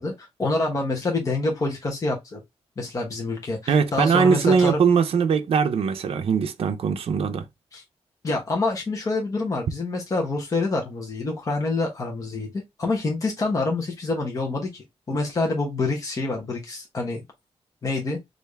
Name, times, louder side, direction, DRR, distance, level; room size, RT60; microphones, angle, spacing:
voice 1, 0.0-2.4 2.8-4.8 7.7-7.8 8.2-12.5 12.8-17.2 17.8-18.2, left 2 dB, 35° left, 0.9 m, -26 dB
voice 2, 3.7-7.4, right 6 dB, 65° right, 0.5 m, -21 dB
3.4 x 2.5 x 3.2 m
wide cardioid pair, 170°, 10 cm